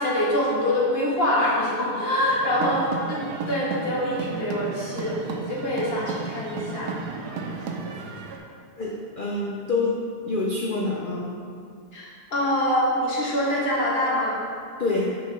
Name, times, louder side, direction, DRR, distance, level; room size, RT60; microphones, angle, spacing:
voice 1, 0.0-6.9 11.9-14.4, left 1 dB, 40° left, -5 dB, 1.3 m, -25 dB
sound 1, 2.2-8.4, right 4 dB, 80° right, 1.2 m, -34 dB
voice 2, 8.8-10.0 10.2-11.3 14.8-15.1, left 3 dB, 85° left, -3 dB, 0.4 m, -26 dB
6.5 x 4.5 x 3.2 m, 2.3 s
omnidirectional pair, 1.7 m